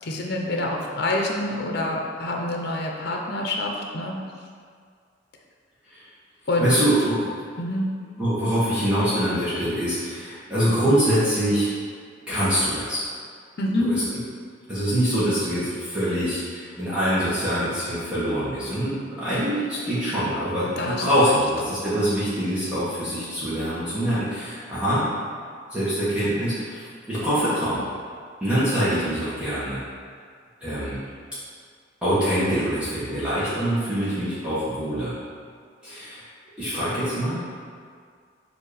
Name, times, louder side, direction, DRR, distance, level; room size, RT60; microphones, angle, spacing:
voice 1, 0.0-4.2 6.5-6.7 7.6-7.9 13.6-13.9 20.8-21.4, left 1 dB, 60° left, 0 dB, 0.8 m, -26 dB
voice 2, 6.6-7.3 8.2-11.7 12.3-13.0 13.8-14.0 14.7-25.1 25.7-27.8 28.4-29.8 30.6-31.0 32.0-35.1 35.8-36.2 36.6-37.4, equal, 5° right, -13 dB, 1.4 m, -24 dB
7.4 x 2.8 x 5.0 m, 2.1 s
head